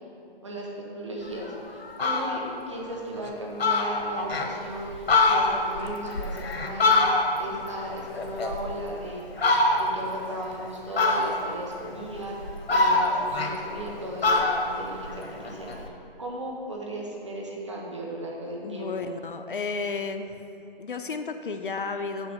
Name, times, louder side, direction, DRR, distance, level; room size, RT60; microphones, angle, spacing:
voice 1, 0.4-9.2 9.7-15.9 16.2-18.9, right 1 dB, 30° right, -2 dB, 1.0 m, -36 dB
Fowl, 1.4-1.5 1.8-2.4 2.9-3.0 3.3-3.4 3.6-4.5 4.9-7.6 7.9-8.9 9.4-10.1 11.0-11.6 12.2-13.9 14.2-15.8, left 2 dB, 85° left, 1.2 m, -24 dB
voice 2, 18.6-20.3 20.8-22.3, left 4 dB, 60° left, 7 dB, 0.5 m, -32 dB
8.2 x 4.4 x 6.9 m, 2.8 s
hypercardioid pair, 180°, 30 cm